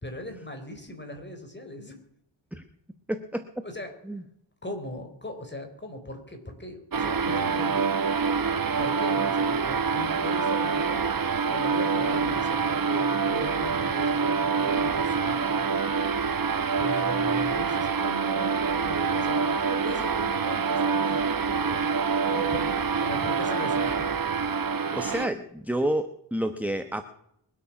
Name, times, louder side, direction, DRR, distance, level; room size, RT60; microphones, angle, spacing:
voice 1, 0.0-2.0 3.6-3.9 4.6-7.9 8.8-11.1 11.5-16.1 16.8-21.9 22.3-24.1, left 1 dB, 25° left, 5 dB, 4.0 m, -39 dB
voice 2, 3.1-3.5 4.1-4.2 24.9-27.0, right 1 dB, 5° right, 9 dB, 1.1 m, -29 dB
sound 1, 6.9-25.3, right 5 dB, 45° right, 1.1 m, -26 dB
22.5 x 8.6 x 6.0 m, 0.74 s
cardioid pair, 60°, 46 cm